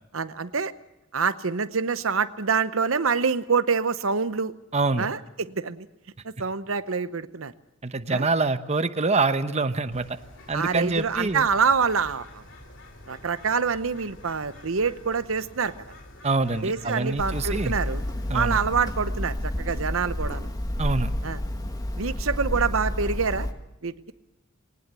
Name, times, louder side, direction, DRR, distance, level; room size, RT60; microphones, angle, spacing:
voice 1, 0.1-0.7 1.1-4.5 5.0-5.9 6.2-7.5 8.1-8.3 10.5-12.4 13.1-15.7 16.6-18.0 18.3-20.5 21.2-21.4 22.0-23.5 23.8-23.9, right 5 dB, 75° right, 13 dB, 0.9 m, -26 dB
voice 2, 4.7-5.1 7.8-10.2 10.5-11.5 16.2-17.8 18.3-18.6 20.8-21.1, right 3 dB, 30° right, 10 dB, 0.9 m, -25 dB
Bird, 9.9-18.9, left 1 dB, 60° left, 3.3 m, -47 dB
Hammer, 17.2-23.5, left 1 dB, 20° left, 1.7 m, -30 dB
21.0 x 19.0 x 8.3 m, 0.92 s
head